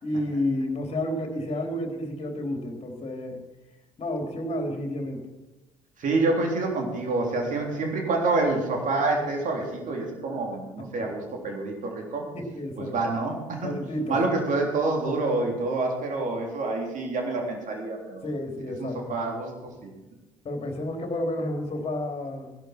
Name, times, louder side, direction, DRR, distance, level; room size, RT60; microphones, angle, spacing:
voice 1, 0.0-3.4 4.0-5.3 10.8-10.9 12.3-12.9 13.6-14.2 18.2-19.2 20.4-22.6, left 1 dB, 35° left, 3 dB, 3.4 m, -30 dB
voice 2, 6.0-12.3 12.8-13.7 14.1-18.2 18.8-19.9, right 3 dB, 50° right, 1 dB, 3.5 m, -27 dB
17.5 x 11.5 x 4.5 m, 1.0 s
figure-of-eight pair, 50°, 17 cm